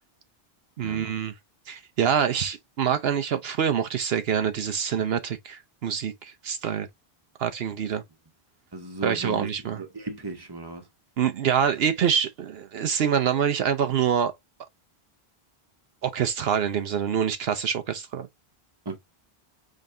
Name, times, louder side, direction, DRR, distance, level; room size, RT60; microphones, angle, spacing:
voice 1, 0.8-1.3 1.7-6.9 7.4-8.0 9.0-9.8 11.2-14.3 16.0-18.3, right 8 dB, 75° right, 0.9 m, -25 dB
voice 2, 8.7-10.8 18.8-19.0, right 3 dB, 25° right, 1.2 m, -36 dB
5.3 x 3.8 x 2.6 m
omnidirectional pair, 1.0 m